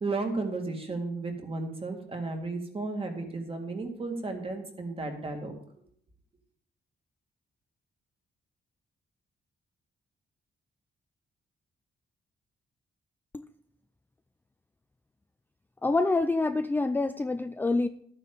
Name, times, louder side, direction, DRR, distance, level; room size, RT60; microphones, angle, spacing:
voice 1, 0.0-5.5, right 3 dB, 30° right, 3 dB, 2.1 m, -34 dB
voice 2, 15.8-17.9, left 3 dB, 10° left, 10 dB, 0.4 m, -26 dB
13.5 x 9.2 x 4.0 m, 0.67 s
wide cardioid pair, 145°, 20 cm